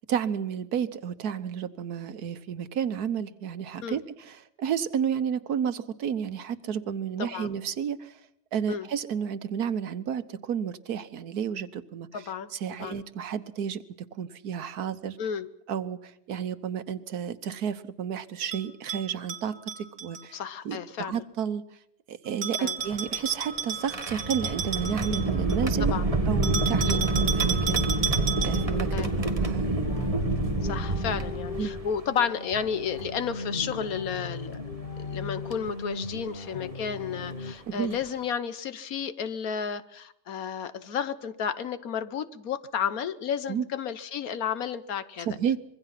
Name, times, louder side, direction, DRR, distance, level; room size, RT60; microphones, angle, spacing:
voice 1, 0.1-8.2 8.5-12.2 12.5-13.8 14.2-15.2 15.7-20.4 20.6-21.6 22.1-25.9 26.3-27.9 28.4-28.9 29.2-30.1 31.6-31.7 37.7-38.0 43.5-43.6 45.3-45.6, right 8 dB, 85° right, 13 dB, 1.6 m, -31 dB
voice 2, 7.2-7.5 8.7-8.9 12.1-12.5 12.8-13.0 15.2-15.5 20.3-21.2 22.6-22.8 25.8-26.1 26.8-27.0 28.9-29.1 30.6-34.6 35.0-45.4, left 7 dB, 70° left, 14 dB, 1.5 m, -32 dB
Bell, 18.5-20.2 22.4-25.7 26.4-28.8, right 7 dB, 55° right, 2.3 m, -33 dB
sound 1, 22.8-32.1 33.0-33.1 34.5-34.8 35.5-35.7 37.3-37.4 37.8-38.1, right 2 dB, 25° right, 1.5 m, -28 dB
sound 2, 25.7-37.5, left 3 dB, 40° left, 1.1 m, -37 dB
25.5 x 22.5 x 5.8 m, 0.76 s
omnidirectional pair, 1.6 m